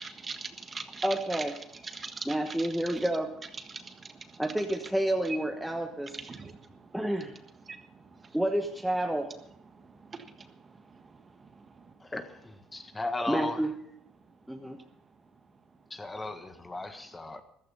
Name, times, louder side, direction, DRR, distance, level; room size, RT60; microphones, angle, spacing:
voice 1, 0.0-1.4 1.8-3.1 3.7-4.4 6.2-6.8 7.7-7.8 8.1-8.4 9.8-10.5 10.9-11.8, right 4 dB, 25° right, 8 dB, 1.5 m, -43 dB
voice 2, 1.0-1.6 2.3-3.3 4.4-6.1 6.9-7.3 8.3-9.3 13.3-13.7 14.5-14.8, right 1 dB, ahead, 2 dB, 1.3 m, -29 dB
voice 3, 12.0-13.7 15.9-17.4, left 2 dB, 15° left, 9 dB, 1.4 m, -36 dB
15.0 x 13.5 x 5.5 m, 0.72 s
cardioid pair, 110°, 0 cm